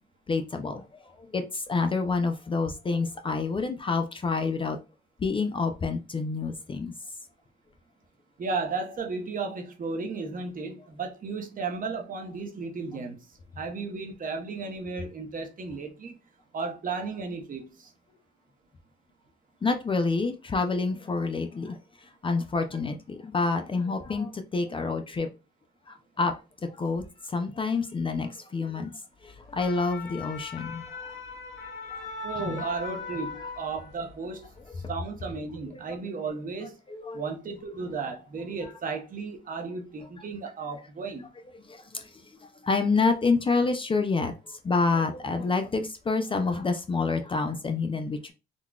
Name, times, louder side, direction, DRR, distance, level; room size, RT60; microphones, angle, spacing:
voice 1, 0.3-4.8 5.2-6.9 19.6-25.3 25.9-26.3 26.6-28.9 29.2-31.1 31.9-32.1 32.4-32.6 35.7-36.0 36.9-37.3 38.0-38.1 41.7-48.3, left 4 dB, 25° left, 0.4 m, -28 dB
voice 2, 8.4-13.2 13.6-16.1 16.5-17.9 32.2-34.5 34.9-36.8 37.1-41.3, right 4 dB, 45° right, 0.8 m, -34 dB
sound 1, 29.3-34.1 34.4-34.7, left 4 dB, 75° left, 1.5 m, -39 dB
3.8 x 2.2 x 2.3 m
cardioid pair, 90°, 20 cm